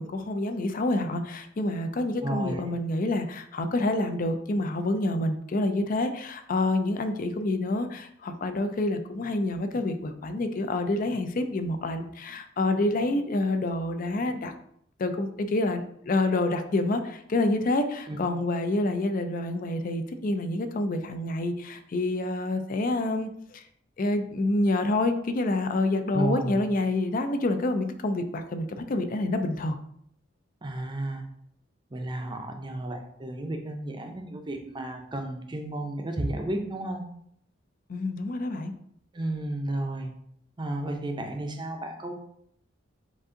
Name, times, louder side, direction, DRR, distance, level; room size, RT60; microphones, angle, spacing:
voice 1, 0.0-14.5 15.0-23.6 24.0-29.8 37.9-38.7, left 2 dB, 45° left, 8 dB, 0.4 m, -27 dB
voice 2, 2.2-2.6 18.1-18.2 26.1-26.6 30.6-31.2 31.9-37.0 39.1-40.1 40.6-42.1, right 1 dB, 25° right, 4 dB, 0.6 m, -32 dB
5.1 x 2.6 x 3.7 m, 0.70 s
head